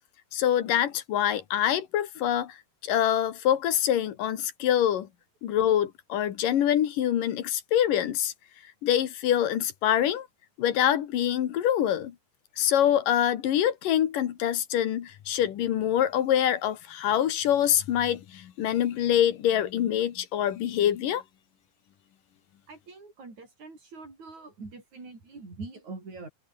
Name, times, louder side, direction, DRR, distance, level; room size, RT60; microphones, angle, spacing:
voice 1, 0.3-2.6 2.8-5.1 5.4-8.3 8.8-10.3 10.6-12.1 12.6-21.2, left 10 dB, 60° left, 2.9 m, -25 dB
voice 2, 22.7-26.3, right 3 dB, 45° right, 9.0 m, -43 dB
omnidirectional pair, 4.8 m